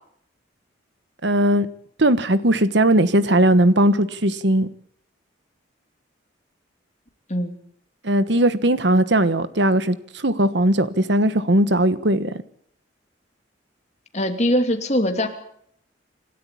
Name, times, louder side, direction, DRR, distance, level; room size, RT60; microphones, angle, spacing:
voice 1, 1.2-1.7 2.0-4.7 8.0-12.4, right 1 dB, 65° right, 1.3 m, -18 dB
voice 2, 14.1-15.3, left 1 dB, 35° left, 2.8 m, -21 dB
27.5 x 12.5 x 8.6 m
head